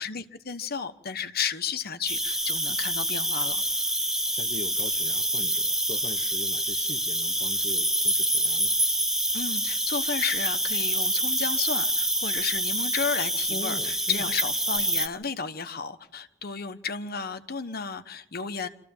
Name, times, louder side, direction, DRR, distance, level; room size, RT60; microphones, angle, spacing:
voice 1, 0.0-3.6 9.3-18.7, left 6 dB, 55° left, 1.1 m, -33 dB
Cricket, 2.1-15.1, right 1 dB, ahead, 0.9 m, -27 dB
voice 2, 4.0-8.8 13.5-14.3, left 2 dB, 35° left, 0.9 m, -41 dB
26.0 x 14.5 x 7.2 m
head